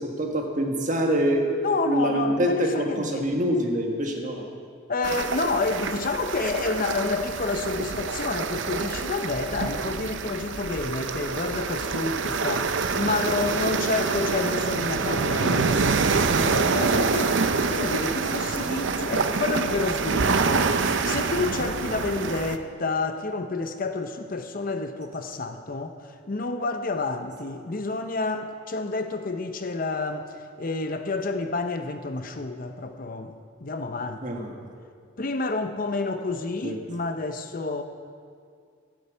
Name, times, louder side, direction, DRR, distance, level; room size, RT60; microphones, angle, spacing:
voice 1, 0.0-1.5 1.8-4.4 34.2-34.5 36.6-36.8, equal, 40° right, 2 dB, 1.6 m, -25 dB
voice 2, 1.6-3.3 4.9-17.3 17.7-25.9 26.3-30.3 30.6-33.4 33.6-34.3 35.2-37.8, left 3 dB, 45° left, 7 dB, 0.7 m, -29 dB
sound 1, 5.0-22.6, right 4 dB, 65° right, 0.7 m, -26 dB
12.0 x 9.9 x 8.1 m, 2.2 s
head